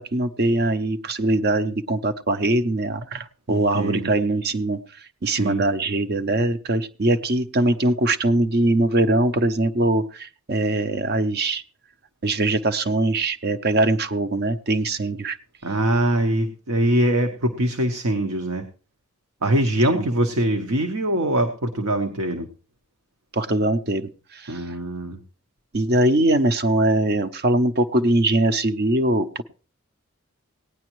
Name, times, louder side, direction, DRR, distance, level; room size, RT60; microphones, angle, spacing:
voice 1, 0.0-4.8 5.2-11.6 12.2-15.4 19.9-20.1 23.3-24.6 25.7-29.4, right 2 dB, 45° right, 11 dB, 0.6 m, -22 dB
voice 2, 3.5-4.1 5.2-5.6 15.6-18.6 19.4-22.5 24.5-25.2, right 1 dB, 75° right, 5 dB, 1.0 m, -23 dB
18.0 x 9.9 x 3.1 m, 0.37 s
head